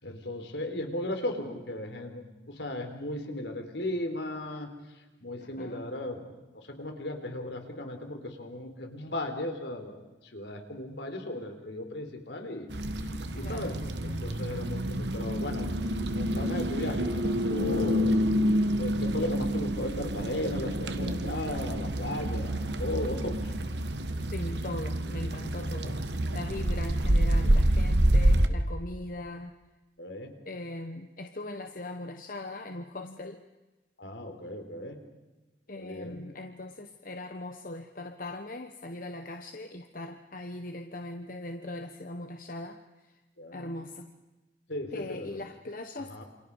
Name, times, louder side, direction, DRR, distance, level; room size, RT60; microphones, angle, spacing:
voice 1, 0.0-4.7 5.2-6.3 6.5-12.7 13.0-13.1 13.3-15.7 16.1-18.1 18.8-23.5 30.0-30.4 34.0-35.0 35.7-36.2 43.4-43.8 44.7-45.4 46.1-46.2, left 1 dB, 70° left, 5 dB, 3.8 m, -36 dB
sound 1, 12.7-28.5, right 1 dB, 70° right, 1.5 m, -28 dB
voice 2, 13.4-13.7 24.3-29.5 30.5-33.4 35.7-42.8 43.5-44.1 44.9-46.2, left 2 dB, 50° left, 6 dB, 1.2 m, -40 dB
28.5 x 28.0 x 4.8 m, 1.1 s
head